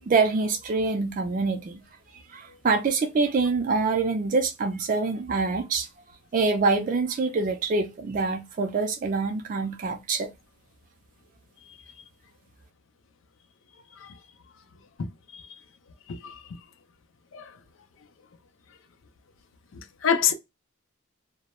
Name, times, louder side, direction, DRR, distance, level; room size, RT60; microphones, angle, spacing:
voice 1, 0.1-1.8 2.3-5.9 6.3-10.3, right 4 dB, 40° right, 0.3 m, -25 dB
voice 2, 20.0-20.3, left 7 dB, 80° left, 0.4 m, -24 dB
2.2 x 2.0 x 2.9 m
head